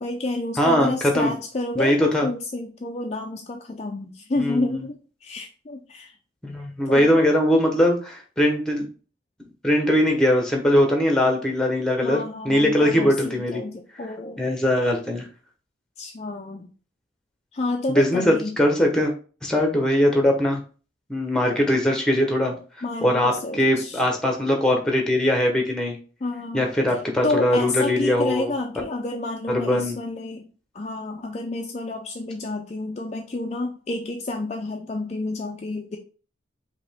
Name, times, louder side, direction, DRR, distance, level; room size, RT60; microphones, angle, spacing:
voice 1, 0.0-4.9 5.2-6.1 6.9-7.3 12.0-14.4 16.0-16.7 17.5-18.5 22.8-24.0 26.2-26.7 27.2-30.4 30.7-36.0, left 2 dB, 35° left, 2 dB, 0.4 m, -30 dB
voice 2, 0.6-1.3 1.7-2.3 4.4-4.8 6.4-8.8 9.6-13.6 14.0-14.1 14.4-15.2 17.9-19.1 19.4-20.6 21.1-22.6 23.0-26.0 26.5-28.5 29.5-30.0, left 1 dB, 5° left, 2 dB, 0.9 m, -21 dB
5.0 x 2.9 x 3.4 m, 0.38 s
head